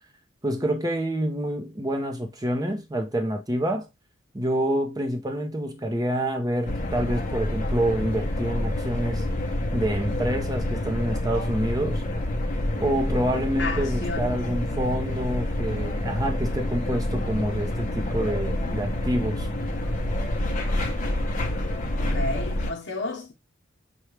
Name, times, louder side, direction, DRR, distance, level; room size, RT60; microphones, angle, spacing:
voice 1, 0.4-3.9 4.3-9.3 9.7-12.0 12.8-19.5, right 1 dB, 20° right, 0.7 m, -27 dB
sound 1, 6.7-22.7, left 1 dB, 40° left, 0.8 m, -28 dB
voice 2, 13.6-14.5 22.0-23.3, left 3 dB, 60° left, 0.9 m, -32 dB
5.8 x 2.3 x 3.1 m
head